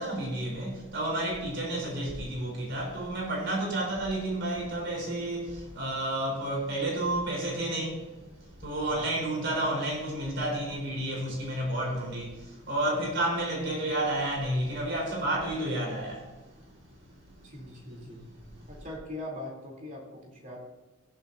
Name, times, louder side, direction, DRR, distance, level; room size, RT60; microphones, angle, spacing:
voice 1, 0.0-5.5 5.8-8.0 8.6-12.3 12.7-16.2, right 1 dB, 50° right, 4.4 m, -30 dB
voice 2, 17.4-18.2 18.7-20.6, left 1 dB, 35° right, 3.6 m, -41 dB
16.0 x 11.0 x 2.8 m
head